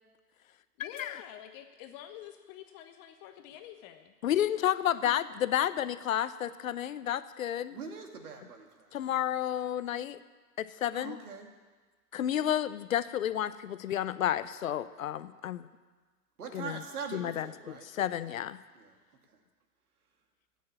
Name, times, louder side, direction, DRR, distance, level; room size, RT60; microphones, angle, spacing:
voice 1, 0.8-4.1, left 11 dB, 20° left, 8 dB, 0.6 m, -48 dB
voice 2, 4.2-7.8 8.9-10.2 10.6-11.2 12.1-15.7 16.5-16.8 17.1-18.6, left 11 dB, 55° left, 15 dB, 0.8 m, -31 dB
voice 3, 7.7-8.9 10.9-11.5 16.4-17.9 18.8-19.0, right 5 dB, 65° right, 3 dB, 2.6 m, -42 dB
13.5 x 9.5 x 8.6 m, 1.4 s
figure-of-eight pair, 115°, 48 cm